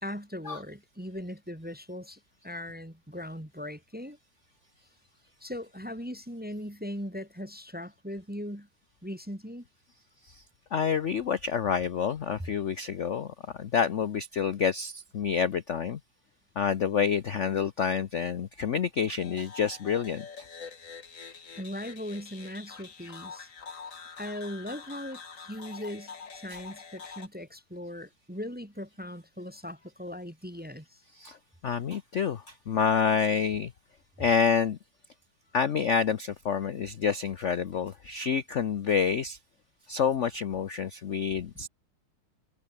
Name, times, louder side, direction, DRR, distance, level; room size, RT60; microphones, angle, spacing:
voice 1, 0.0-4.2 5.4-8.7 9.0-9.6 21.6-23.8 24.2-31.0, left 1 dB, 5° right, 1.1 m, -39 dB
voice 2, 10.7-16.0 16.6-20.3 31.2-31.4 31.6-33.7 34.2-34.8 35.5-39.4 39.9-41.7, left 7 dB, 65° left, 0.7 m, -28 dB
sound 1, 19.2-27.3, left 5 dB, 40° left, 2.0 m, -45 dB
omnidirectional pair, 2.4 m